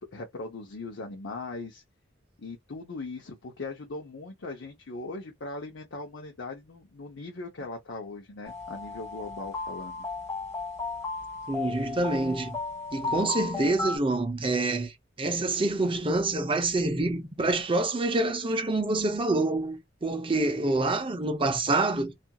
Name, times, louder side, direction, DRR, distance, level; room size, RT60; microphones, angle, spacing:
voice 1, 0.1-1.8 2.4-10.1, left 3 dB, 75° left, 0.7 m, -39 dB
sound 1, 8.4-14.0, left 3 dB, 15° left, 1.3 m, -34 dB
voice 2, 11.5-12.6 12.9-14.9 15.2-22.1, right 2 dB, 25° right, 0.6 m, -27 dB
2.8 x 2.4 x 2.3 m
head